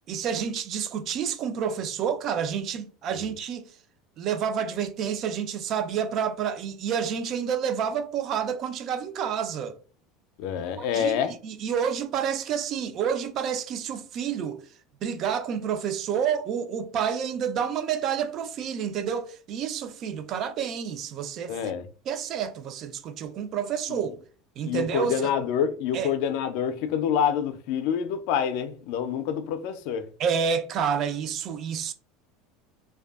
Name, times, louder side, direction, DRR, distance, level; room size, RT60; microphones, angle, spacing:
voice 1, 0.1-3.7 4.2-9.7 10.8-14.6 15.0-21.5 22.1-24.2 24.6-25.3 25.9-26.1 30.2-31.9, right 7 dB, 45° right, 0.3 m, -29 dB
voice 2, 10.4-11.3 21.5-21.9 23.9-24.1 24.6-30.1, left 8 dB, 65° left, 0.3 m, -27 dB
2.5 x 2.2 x 2.3 m
supercardioid pair, 140°, 0 cm